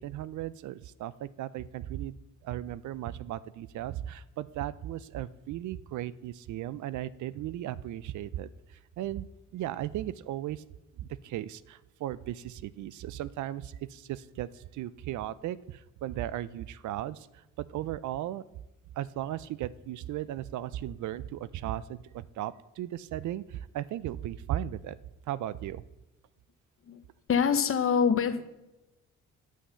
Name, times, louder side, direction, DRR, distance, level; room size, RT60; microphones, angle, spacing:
voice 1, 0.0-2.2 2.4-9.3 9.5-10.6 11.0-18.4 19.0-25.0 25.3-25.8, right 12 dB, 75° right, 18 dB, 0.5 m, -36 dB
voice 2, 27.3-28.6, left 7 dB, 45° left, 10 dB, 1.0 m, -25 dB
9.5 x 6.4 x 6.8 m, 0.99 s
cardioid pair, 90°, 30 cm